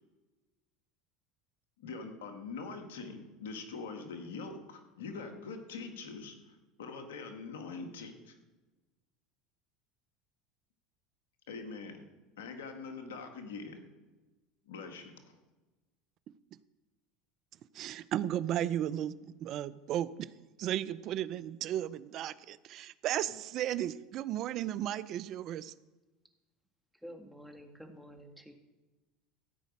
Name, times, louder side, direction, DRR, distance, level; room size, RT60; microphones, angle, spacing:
voice 1, 1.8-8.3 11.5-12.0 12.4-13.8 14.6-15.3, left 4 dB, 85° left, 5 dB, 1.7 m, -43 dB
voice 2, 17.7-20.3 20.6-25.7, right 11 dB, 55° right, 18 dB, 0.5 m, -35 dB
voice 3, 27.0-28.5, equal, ahead, 4 dB, 1.9 m, -49 dB
14.5 x 5.1 x 8.6 m, 1.2 s
hypercardioid pair, 90°, 0 cm